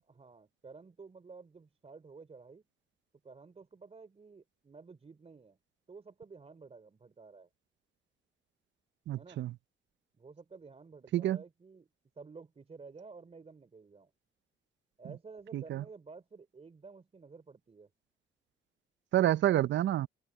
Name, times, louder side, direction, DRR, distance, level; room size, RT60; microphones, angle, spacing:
voice 1, 0.0-2.6 3.2-5.6 5.9-7.5 9.1-9.4 10.2-11.9 12.2-14.1 15.0-17.9, right 4 dB, 30° right, 3.7 m, -52 dB
voice 2, 9.1-9.5 11.1-11.4 15.5-15.8 19.1-20.1, right 13 dB, 65° right, 0.7 m, -28 dB
cardioid pair, 90°, 20 cm